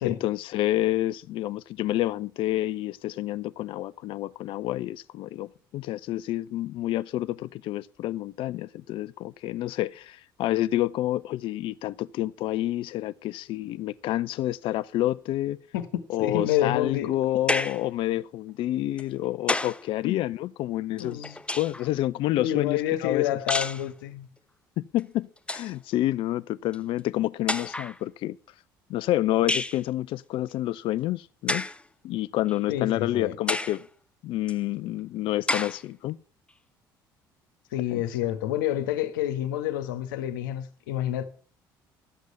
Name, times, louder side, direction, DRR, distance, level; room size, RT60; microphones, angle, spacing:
voice 1, 0.1-15.6 16.1-23.4 24.9-28.4 28.9-31.7 32.0-33.8 34.2-36.2 37.9-38.0, left 14 dB, 50° left, 0.4 m, -28 dB
voice 2, 16.2-17.1 20.0-20.2 21.0-21.4 22.4-24.3 32.7-33.4 37.7-41.3, left 12 dB, 70° left, 1.3 m, -28 dB
sound 1, 17.5-17.9 19.0-19.9 21.0-21.9 23.5-23.9 25.0-25.1 25.4-25.7 26.7-26.8 27.5-28.0 29.5-29.8 31.5-31.8 32.5-32.6 33.5-33.8 34.5-34.6 35.5-35.8, left 2 dB, 10° left, 0.8 m, -29 dB
12.0 x 8.2 x 5.9 m
figure-of-eight pair, 55°, 11 cm